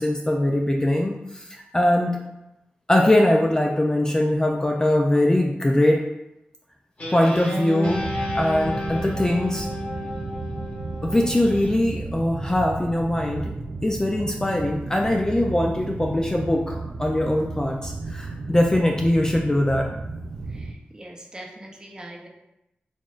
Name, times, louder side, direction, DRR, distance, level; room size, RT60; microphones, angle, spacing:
voice 1, 0.0-1.4 1.7-2.2 2.9-6.0 7.1-8.0 8.3-9.7 11.0-13.5 13.8-19.9, left 1 dB, 20° left, 1 dB, 0.3 m, -21 dB
Guitar, 7.0-11.7, equal, 40° left, 1.4 m, -31 dB
sound 1, 7.8-20.7, right 3 dB, 70° right, 0.4 m, -34 dB
voice 2, 20.5-22.3, right 1 dB, 20° right, -1 dB, 0.6 m, -42 dB
4.2 x 3.1 x 2.4 m, 0.88 s
wide cardioid pair, 100°, 4 cm